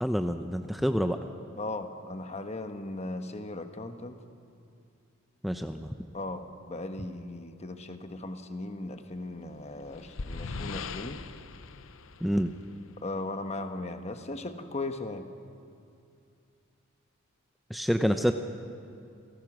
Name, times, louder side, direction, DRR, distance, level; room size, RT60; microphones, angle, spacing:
voice 1, 0.0-1.2 5.4-5.9 12.2-12.5 17.7-18.3, equal, ahead, 6 dB, 0.6 m, -27 dB
voice 2, 1.6-4.2 6.1-11.2 13.0-15.3, left 2 dB, 30° left, 7 dB, 1.1 m, -37 dB
sound 1, 9.4-13.0, left 4 dB, 70° left, 0.7 m, -40 dB
28.0 x 17.0 x 6.2 m, 2.6 s
head